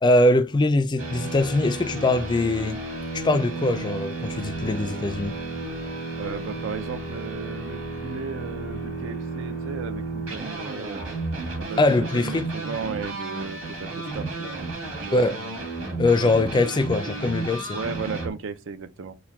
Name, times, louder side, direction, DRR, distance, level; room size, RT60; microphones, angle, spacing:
voice 1, 0.0-2.8 3.1-5.3 11.8-12.5 15.1-15.4 16.0-17.8, left 2 dB, 20° left, 0.3 m, -22 dB
sound 1, 1.0-18.3, right 2 dB, 90° right, 2.3 m, -33 dB
voice 2, 6.1-11.1 11.6-14.7 15.1-15.6 16.2-16.3 17.7-19.1, right 5 dB, 70° right, 0.5 m, -35 dB
4.4 x 2.2 x 3.4 m
head